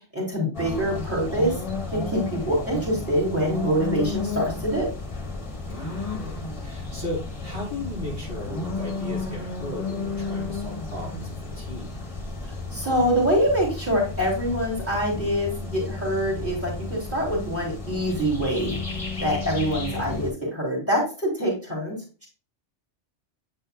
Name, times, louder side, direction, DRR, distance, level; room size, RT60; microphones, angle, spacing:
voice 1, 0.1-1.6 1.9-4.9 12.7-21.9, equal, 10° right, -5 dB, 3.3 m, -25 dB
sound 1, 0.5-20.3, left 3 dB, 30° left, 1.4 m, -33 dB
voice 2, 5.7-12.0, left 1 dB, 50° right, -5 dB, 2.9 m, -36 dB
8.9 x 5.5 x 2.2 m, 0.33 s
omnidirectional pair, 1.2 m